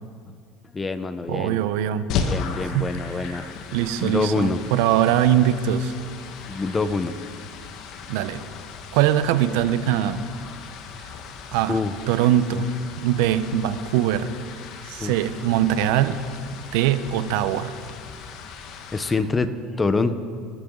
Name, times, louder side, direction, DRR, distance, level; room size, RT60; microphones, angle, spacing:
voice 1, 0.7-1.6 2.3-3.5 4.0-4.6 6.5-7.2 11.7-11.9 15.0-15.1 18.9-20.2, left 3 dB, 20° left, 11 dB, 1.1 m, -25 dB
voice 2, 1.3-2.1 2.7-2.9 3.3-3.4 3.7-5.9 8.1-8.4 8.9-10.3 11.5-11.8 12.1-12.7 13.0-14.3 14.9-16.2 16.7-17.7, right 11 dB, 75° right, 12 dB, 0.9 m, -22 dB
sound 1, 2.1-19.1, left 6 dB, 65° left, 1.7 m, -36 dB
26.0 x 13.5 x 4.0 m, 2.1 s
supercardioid pair, 95°, 0 cm